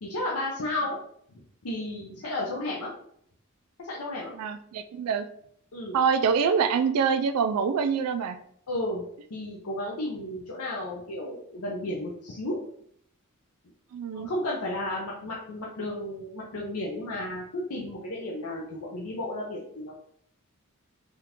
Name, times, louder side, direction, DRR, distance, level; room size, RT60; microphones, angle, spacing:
voice 1, 0.0-1.0 1.6-2.9 3.8-4.3 5.7-6.0 8.7-9.0 9.3-12.6 14.1-19.9, left 1 dB, 85° left, -3 dB, 0.6 m, -33 dB
voice 2, 4.4-5.3 5.9-8.4 13.9-14.3, right 6 dB, 90° right, 10 dB, 0.3 m, -25 dB
3.5 x 2.4 x 2.9 m, 0.66 s
head